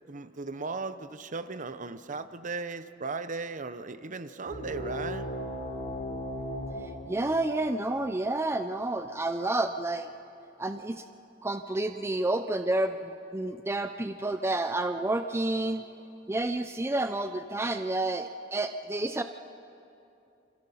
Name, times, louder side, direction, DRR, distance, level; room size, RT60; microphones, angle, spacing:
voice 1, 0.1-5.3, right 4 dB, 40° right, 12 dB, 0.8 m, -36 dB
sound 1, 4.5-9.6, equal, 50° left, 4.1 m, -38 dB
voice 2, 7.1-10.1 10.6-11.0 11.4-15.8 16.3-19.2, right 2 dB, 15° right, 8 dB, 0.6 m, -30 dB
28.5 x 26.0 x 5.7 m, 2.7 s
head